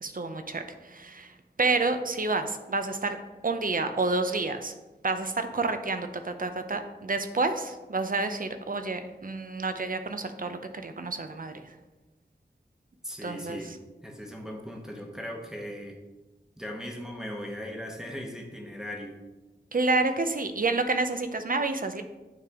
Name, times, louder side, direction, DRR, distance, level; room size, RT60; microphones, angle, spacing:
voice 1, 0.0-3.2 3.4-4.7 5.0-11.8 13.2-13.6 19.7-22.0, right 3 dB, 50° right, 8 dB, 0.6 m, -29 dB
voice 2, 13.0-16.0 16.6-19.2, equal, 5° right, 0 dB, 1.1 m, -38 dB
9.4 x 3.5 x 3.6 m, 1.2 s
wide cardioid pair, 55°, 18 cm